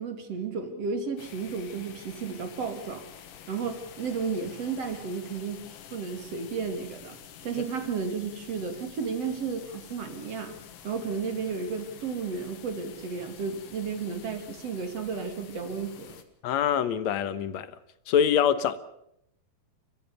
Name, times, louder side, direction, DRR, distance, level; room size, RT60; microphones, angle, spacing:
voice 1, 0.0-3.1 3.5-7.2 7.4-10.6 10.8-16.1, right 5 dB, 50° right, 3.6 m, -33 dB
sound 1, 1.2-16.2, left 9 dB, 85° left, 3.3 m, -48 dB
voice 2, 16.4-17.7 18.1-18.8, left 8 dB, 65° left, 2.2 m, -24 dB
29.5 x 15.0 x 7.0 m
omnidirectional pair, 3.8 m